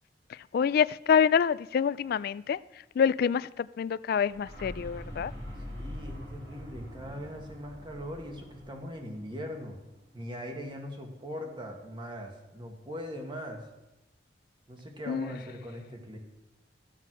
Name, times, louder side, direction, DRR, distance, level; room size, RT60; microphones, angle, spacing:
voice 1, 0.3-2.6 3.0-5.3 15.1-15.4, left 7 dB, 55° left, 18 dB, 0.3 m, -26 dB
sound 1, 4.2-10.0, left 1 dB, 85° right, 5.0 m, -44 dB
voice 2, 5.7-9.8 10.1-13.6 14.7-16.2, equal, 25° right, 2 dB, 1.8 m, -40 dB
14.0 x 7.6 x 6.2 m, 0.99 s
head